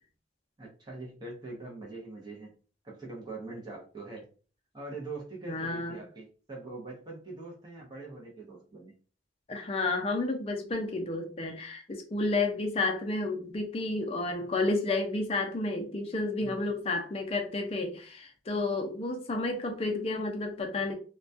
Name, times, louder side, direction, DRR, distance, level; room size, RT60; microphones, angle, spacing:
voice 1, 0.6-2.5 2.8-4.3 4.7-8.9 16.4-16.6, right 2 dB, 25° right, -3 dB, 0.6 m, -43 dB
voice 2, 5.5-6.0 9.5-21.0, left 2 dB, 30° left, 3 dB, 0.4 m, -31 dB
2.2 x 2.2 x 2.5 m, 0.38 s
head